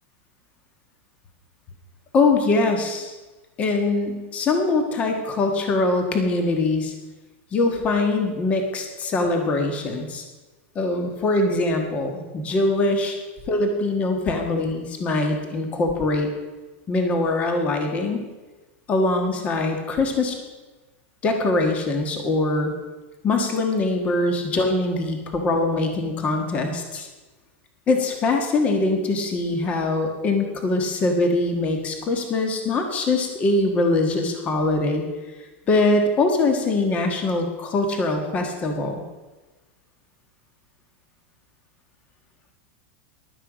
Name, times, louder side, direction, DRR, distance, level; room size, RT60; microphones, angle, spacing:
voice 1, 2.1-3.1 3.6-6.9 7.5-10.2 10.7-13.2 13.5-16.3 16.9-18.2 18.9-20.4 21.2-22.7 23.2-27.1 27.9-35.0 35.7-39.0, left 2 dB, 20° left, 4 dB, 1.4 m, -22 dB
16.0 x 11.5 x 5.0 m, 1.2 s
supercardioid pair, 170°, 7 cm